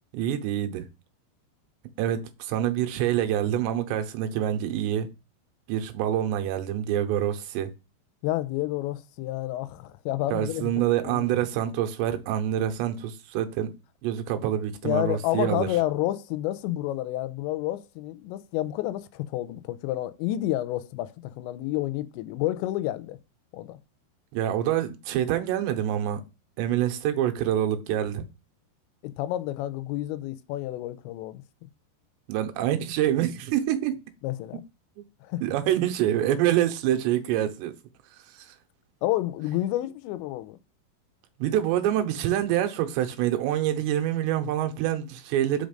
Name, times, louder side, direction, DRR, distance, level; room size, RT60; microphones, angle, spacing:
voice 1, 0.1-0.9 2.0-5.1 5.7-7.7 10.3-13.7 14.0-15.7 24.3-26.2 26.6-28.2 32.3-33.9 35.4-37.7 38.3-38.5 41.4-45.7, right 11 dB, 85° right, 3.0 m, -26 dB
voice 2, 8.2-10.7 11.0-11.3 14.8-23.2 23.5-23.8 29.0-31.4 34.2-34.6 35.2-35.4 39.0-40.6, left 15 dB, 90° left, 2.9 m, -30 dB
5.6 x 5.1 x 5.2 m
omnidirectional pair, 5.1 m